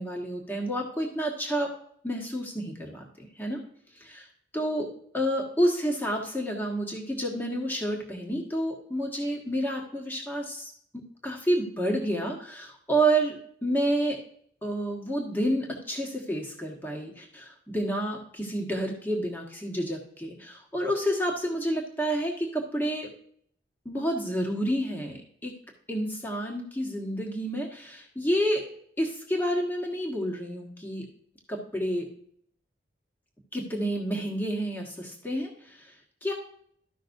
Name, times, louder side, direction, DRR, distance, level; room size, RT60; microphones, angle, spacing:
voice 1, 0.0-1.7 2.0-3.6 3.9-4.3 4.5-14.2 14.6-23.1 23.8-25.5 25.9-28.6 29.0-31.1 31.5-32.0 33.5-36.3, right 1 dB, 10° left, -1 dB, 1.4 m, -29 dB
13.5 x 5.8 x 2.7 m, 0.63 s
head